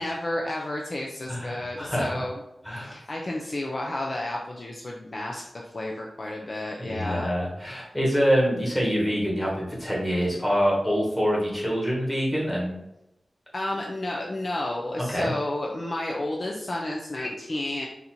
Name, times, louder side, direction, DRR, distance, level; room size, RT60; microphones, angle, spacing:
voice 1, 0.0-2.4 2.7-5.4 5.7-7.3 13.5-17.9, left 1 dB, 40° left, -1 dB, 0.5 m, -31 dB
voice 2, 1.3-2.2 2.6-3.0 6.8-12.8 15.1-15.3, equal, 15° left, -4 dB, 1.6 m, -25 dB
4.1 x 2.7 x 4.3 m, 0.85 s
wide cardioid pair, 115°, 0 cm